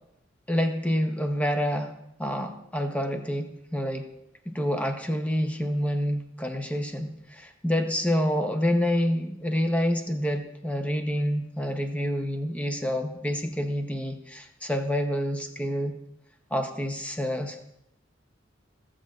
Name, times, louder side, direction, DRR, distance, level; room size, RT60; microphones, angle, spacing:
voice 1, 0.5-4.1 4.5-15.9 16.5-17.6, equal, 5° left, 5 dB, 0.7 m, -28 dB
15.0 x 7.5 x 2.4 m, 0.80 s
head